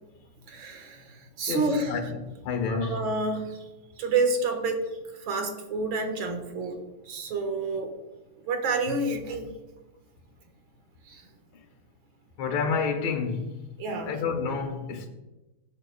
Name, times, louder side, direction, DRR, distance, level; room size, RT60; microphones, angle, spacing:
voice 1, 0.5-2.0 2.7-3.7 4.0-4.8 5.2-6.8 7.1-7.9 8.5-9.5 11.1-11.2 13.8-14.2, right 3 dB, 50° right, 1.7 m, -29 dB
voice 2, 1.5-3.1 12.4-13.6 14.0-15.1, left 5 dB, 65° left, 2.6 m, -29 dB
15.5 x 9.4 x 2.2 m
omnidirectional pair, 3.5 m